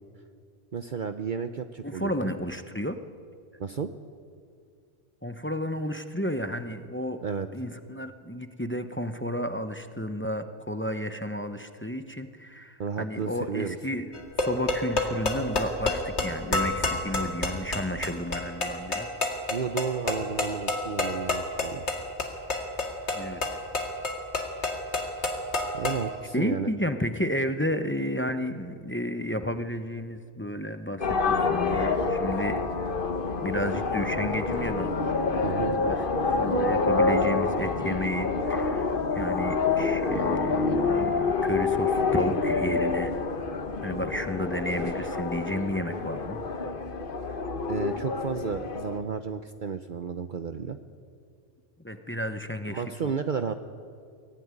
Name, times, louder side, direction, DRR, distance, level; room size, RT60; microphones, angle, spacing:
voice 1, 0.7-2.3 3.6-3.9 7.2-7.5 12.8-13.8 19.5-21.8 25.7-26.7 35.4-35.8 47.7-50.8 52.7-53.5, right 6 dB, 50° right, 8 dB, 0.9 m, -32 dB
voice 2, 1.8-3.0 5.2-7.2 7.5-19.1 23.1-23.4 26.3-32.6 33.4-34.9 35.3-43.1 43.5-46.4 51.8-53.1, equal, 10° left, 8 dB, 0.9 m, -32 dB
sound 1, 14.1-26.1, left 2 dB, 80° left, 2.5 m, -29 dB
sound 2, 31.0-49.0, left 4 dB, 50° left, 1.3 m, -27 dB
23.0 x 15.0 x 9.8 m, 2.3 s
omnidirectional pair, 1.1 m